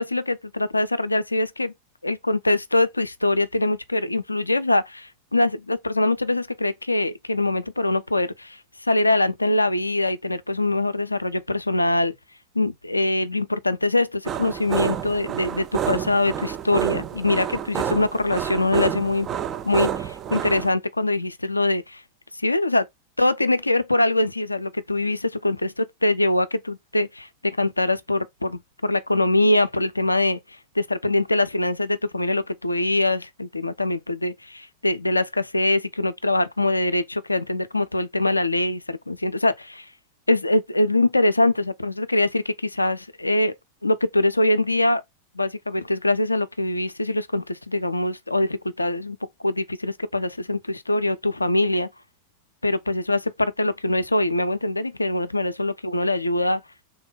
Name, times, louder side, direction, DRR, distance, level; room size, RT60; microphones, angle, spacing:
voice 1, 0.0-1.7 2.0-12.1 12.5-19.3 19.6-22.0 22.3-22.9 23.2-30.4 30.8-39.9 40.3-43.5 43.8-45.0 45.4-49.2 49.4-51.9 52.6-56.6, left 2 dB, 85° left, 0.3 m, -23 dB
sound 1, 14.3-20.7, right 9 dB, 30° right, 0.3 m, -29 dB
3.3 x 2.2 x 3.6 m
figure-of-eight pair, 90°, 0 cm